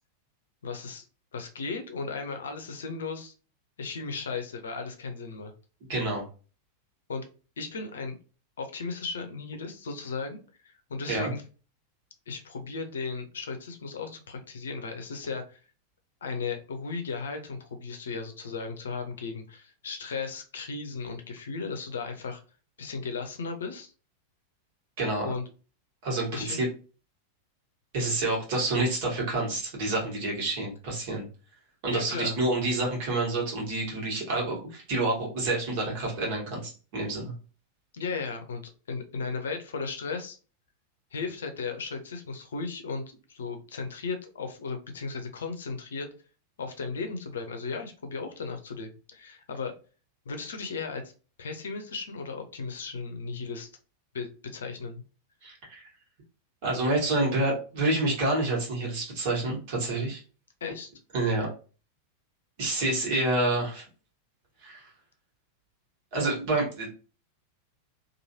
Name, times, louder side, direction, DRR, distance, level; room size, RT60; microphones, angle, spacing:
voice 1, 0.6-1.0 1.3-3.3 3.8-5.5 7.1-7.3 7.6-8.2 8.6-11.4 12.3-15.6 16.2-22.4 22.8-23.9 25.2-25.4 26.3-26.6 31.9-32.4 37.9-38.6 38.9-40.4 41.1-46.1 46.6-49.7 50.3-51.0 51.4-53.7 54.1-55.0 60.6-60.9, left 4 dB, 65° left, 6 dB, 0.6 m, -36 dB
voice 2, 5.9-6.2 11.1-11.3 25.0-25.3 26.0-26.7 27.9-31.2 31.8-37.3 55.4-55.8 56.6-60.2 61.1-61.5 62.6-63.8 64.6-64.9 66.1-66.9, right 2 dB, 50° right, -2 dB, 1.5 m, -28 dB
3.0 x 2.5 x 2.7 m, 0.35 s
figure-of-eight pair, 90°, 0 cm